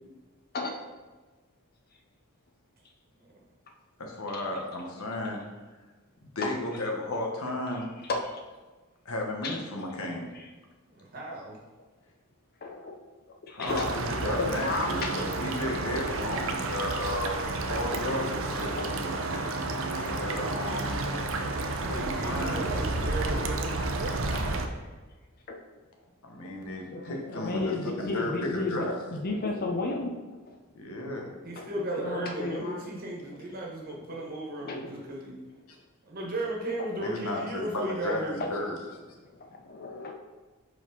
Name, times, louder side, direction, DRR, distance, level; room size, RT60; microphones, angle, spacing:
voice 1, 4.0-5.4 6.3-7.9 9.0-10.3 13.5-17.3 17.7-18.3 18.6-19.4 20.0-21.1 21.8-22.7 26.2-28.9 30.8-31.3 37.0-38.8, left 1 dB, 75° left, 1 dB, 1.2 m, -34 dB
voice 2, 8.0-8.4 9.4-9.6 10.3-10.5 12.6-13.0 13.4-13.9 14.4-15.1 17.9-18.0 18.8-18.9 20.0-20.2 24.3-24.5 25.5-25.6 26.4-26.5 26.9-30.2 30.5-30.6 31.5-32.9 33.2-33.4 34.6-34.9 36.8-37.1 38.4-38.6 39.2-40.1, left 2 dB, 45° left, 3 dB, 0.6 m, -33 dB
voice 3, 10.9-11.6 21.8-23.9 31.4-35.3 36.1-38.4, right 1 dB, 45° right, -2 dB, 1.4 m, -35 dB
sound 1, 13.7-24.7, right 2 dB, 60° right, 0.6 m, -31 dB
4.9 x 4.2 x 5.3 m, 1.3 s
head